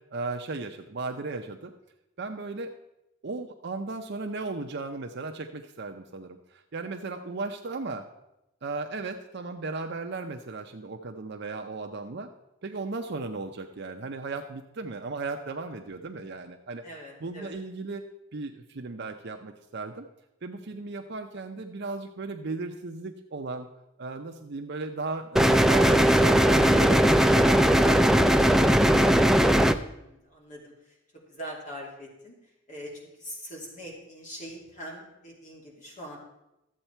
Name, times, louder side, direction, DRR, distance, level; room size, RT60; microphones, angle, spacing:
voice 1, 0.1-1.7 2.2-2.7 3.2-8.0 8.6-12.3 12.6-16.9 17.2-18.0 18.3-20.1 20.4-23.7 24.0-29.1, right 3 dB, 60° right, 4 dB, 0.7 m, -36 dB
voice 2, 16.8-17.5 29.7-31.0 31.3-36.2, equal, 40° left, -1 dB, 2.6 m, -43 dB
sound 1, 25.4-29.8, right 1 dB, ahead, 0.4 m, -19 dB
13.0 x 8.1 x 4.4 m, 0.88 s
head